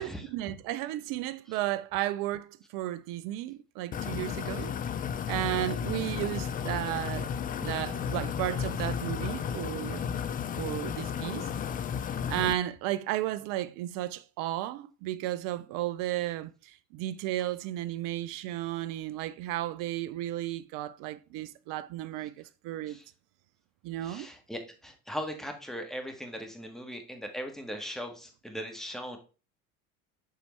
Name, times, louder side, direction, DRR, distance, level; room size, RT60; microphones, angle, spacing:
voice 1, 0.0-4.7 5.3-7.3 7.6-10.2 10.6-11.5 12.3-23.0 23.8-24.3, right 14 dB, 50° right, 0.5 m, -34 dB
sound 1, 3.9-12.5, left 7 dB, 20° left, 0.4 m, -33 dB
voice 2, 24.0-29.2, equal, ahead, 1.6 m, -39 dB
6.8 x 5.6 x 3.1 m
figure-of-eight pair, 65°, 45 cm